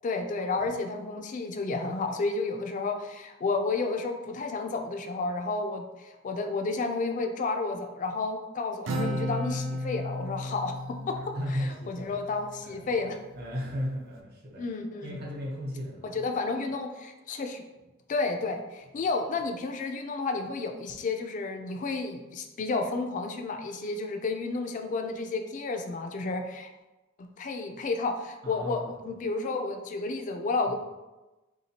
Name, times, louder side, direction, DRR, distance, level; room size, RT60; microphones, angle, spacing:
voice 1, 0.0-10.8 11.1-11.2 11.9-13.2 14.6-15.2 16.0-17.6 18.1-26.7 27.4-30.8, left 3 dB, 40° left, 5 dB, 0.3 m, -31 dB
Acoustic guitar, 8.9-12.5, equal, 70° right, 0.4 m, -34 dB
voice 2, 11.1-12.1 12.6-12.9 13.3-14.6 15.0-16.3 18.9-19.0 28.4-28.9 30.7-30.8, equal, 50° right, -2 dB, 0.8 m, -35 dB
3.5 x 2.8 x 2.8 m, 1.1 s
head